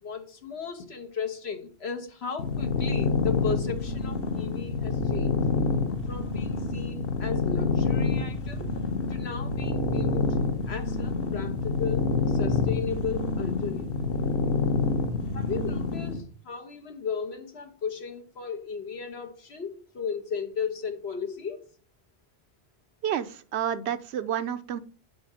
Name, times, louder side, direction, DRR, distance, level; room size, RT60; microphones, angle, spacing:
voice 1, 0.0-5.4 6.1-8.7 9.1-10.4 10.7-14.1 15.3-21.6, left 6 dB, 80° left, 6 dB, 1.5 m, -35 dB
sound 1, 2.4-16.2, left 4 dB, 60° left, 1.2 m, -27 dB
voice 2, 23.0-24.8, right 9 dB, 85° right, 12 dB, 1.0 m, -30 dB
10.0 x 4.0 x 4.9 m, 0.41 s
omnidirectional pair, 1.1 m